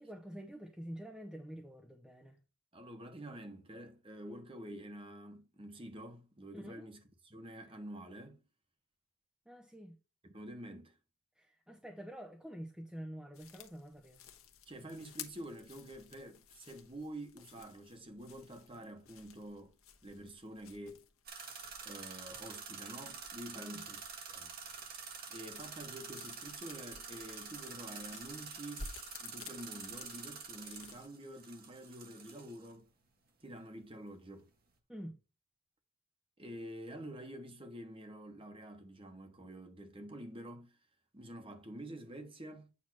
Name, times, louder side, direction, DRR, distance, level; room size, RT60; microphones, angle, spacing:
voice 1, 0.0-2.4 6.5-6.9 9.5-10.0 11.4-14.2 23.6-23.8 34.9-35.2, equal, 5° right, 0.6 m, -47 dB
voice 2, 2.7-8.4 10.2-11.0 14.7-19.7 20.0-21.0 21.8-24.5 25.3-28.9 29.2-32.9 33.4-34.5 36.4-40.8 41.1-42.7, right 1 dB, 25° right, 1.2 m, -48 dB
sound 1, 13.3-31.1, left 5 dB, 75° left, 1.1 m, -55 dB
sound 2, 21.3-32.7, right 5 dB, 45° right, 1.3 m, -47 dB
8.5 x 2.9 x 6.0 m
head